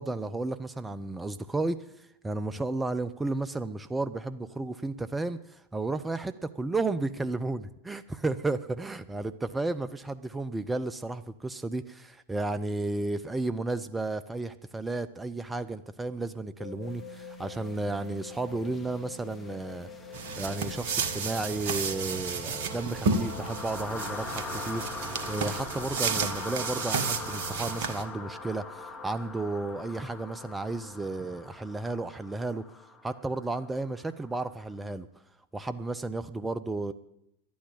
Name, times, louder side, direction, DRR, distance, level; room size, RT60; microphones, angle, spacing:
voice 1, 0.0-7.6 7.9-19.9 20.4-32.6 33.0-35.1 35.5-36.9, right 2 dB, 10° right, 11 dB, 0.6 m, -33 dB
sound 1, 16.6-31.0, left 5 dB, 60° left, 1.9 m, -48 dB
sound 2, 17.0-34.7, left 3 dB, 15° left, 1.6 m, -43 dB
sound 3, 20.1-28.0, right 5 dB, 50° right, 1.3 m, -32 dB
11.5 x 9.4 x 10.0 m, 0.82 s
figure-of-eight pair, 90°, 0 cm